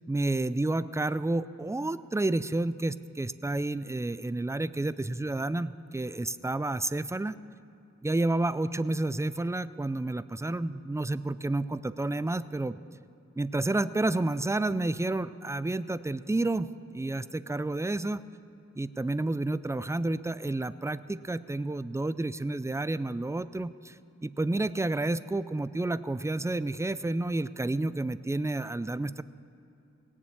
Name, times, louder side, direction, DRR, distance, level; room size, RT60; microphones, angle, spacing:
voice 1, 0.1-7.3 8.0-12.8 13.4-18.2 18.8-24.0 24.2-29.2, right 2 dB, 10° right, 15 dB, 0.4 m, -30 dB
18.0 x 7.4 x 8.6 m, 2.7 s
cardioid pair, 55°, 29 cm